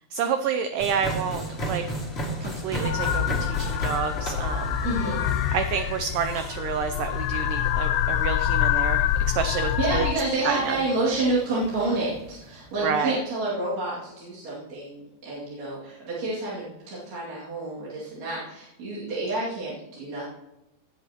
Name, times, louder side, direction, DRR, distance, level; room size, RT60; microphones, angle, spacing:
voice 1, 0.1-1.8 2.4-4.8 5.5-10.1 10.5-10.8 12.8-13.2, right 7 dB, 85° right, 8 dB, 1.9 m, -29 dB
sound 1, 0.8-12.8, equal, 20° left, 1.7 m, -36 dB
sound 2, 2.8-10.1, left 10 dB, 85° left, 2.6 m, -26 dB
voice 2, 4.8-5.2 9.5-20.2, right 2 dB, 50° right, -9 dB, 3.4 m, -29 dB
18.0 x 8.1 x 3.0 m, 0.92 s
omnidirectional pair, 4.5 m